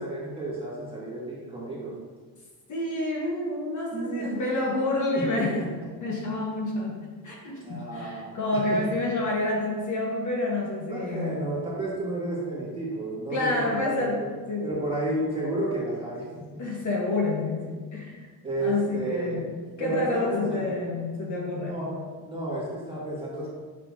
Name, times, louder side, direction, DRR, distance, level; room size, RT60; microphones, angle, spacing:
voice 1, 0.0-1.9 3.9-5.7 7.6-8.8 10.8-14.1 14.6-16.6 18.4-19.4 19.8-20.7 21.6-23.5, right 1 dB, 10° right, -7 dB, 2.1 m, -32 dB
voice 2, 2.7-5.6 6.0-11.4 13.3-14.8 16.6-18.3 18.6-19.5 19.8-21.8, left 2 dB, 40° left, -2 dB, 1.5 m, -29 dB
7.4 x 6.1 x 2.9 m, 1.4 s
cardioid pair, 125°, 44 cm